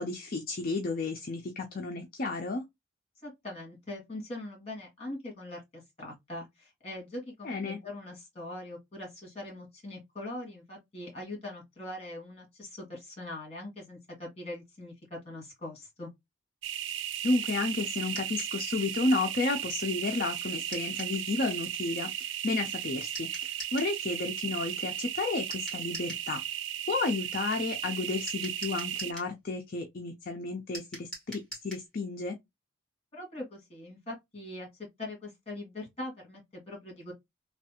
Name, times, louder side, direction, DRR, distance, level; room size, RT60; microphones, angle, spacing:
voice 1, 0.0-2.6 7.4-7.8 17.2-26.4 26.9-32.4, left 3 dB, 45° left, 0.4 m, -32 dB
voice 2, 3.2-16.1 33.1-34.7 35.0-37.1, left 1 dB, 30° left, 1.7 m, -42 dB
sound 1, 16.6-29.1, right 11 dB, 60° right, 0.3 m, -36 dB
sound 2, 18.1-18.6 20.7-21.2 23.1-23.9 25.5-26.3 28.3-29.3 30.7-31.9, right 1 dB, 5° left, 1.7 m, -43 dB
3.2 x 2.3 x 2.8 m
head